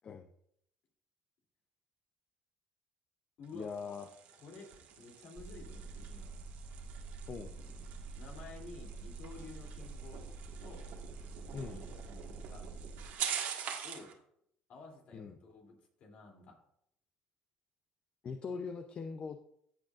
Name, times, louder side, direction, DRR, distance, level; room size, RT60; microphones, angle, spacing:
sound 1, 3.4-14.1, right 8 dB, 70° right, 1.5 m, -45 dB
voice 1, 3.5-4.1 7.3-7.6 11.5-11.8 15.1-15.4 18.2-19.4, left 5 dB, 40° left, 7 dB, 0.5 m, -41 dB
voice 2, 4.3-4.7 5.0-6.3 8.2-10.2 10.6-10.9 11.6-12.6 13.8-14.1 14.7-16.6, left 3 dB, 60° left, 0 dB, 2.9 m, -52 dB
sound 2, 5.4-13.1, right 3 dB, 25° right, 0.5 m, -47 dB
15.0 x 6.3 x 2.5 m, 0.72 s
cardioid pair, 115°, 3 cm